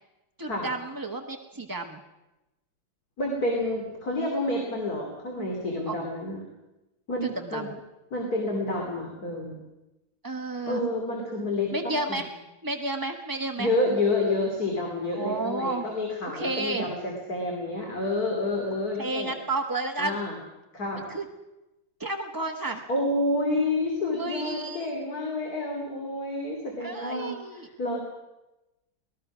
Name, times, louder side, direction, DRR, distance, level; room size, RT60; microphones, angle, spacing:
voice 1, 0.4-2.0 5.9-6.0 7.2-7.7 10.2-10.8 11.7-12.3 12.6-13.7 15.2-15.8 16.3-16.9 19.0-20.2 21.1-21.2 22.0-22.8 24.1-24.9 26.8-27.7, right 2 dB, 20° right, 3 dB, 0.5 m, -31 dB
voice 2, 3.2-6.4 7.1-7.7 8.1-9.6 10.6-12.2 13.6-19.3 20.0-20.4 20.7-21.0 22.9-28.0, left 2 dB, 45° left, 1 dB, 3.3 m, -29 dB
24.0 x 18.5 x 6.1 m, 1.0 s
omnidirectional pair, 2.3 m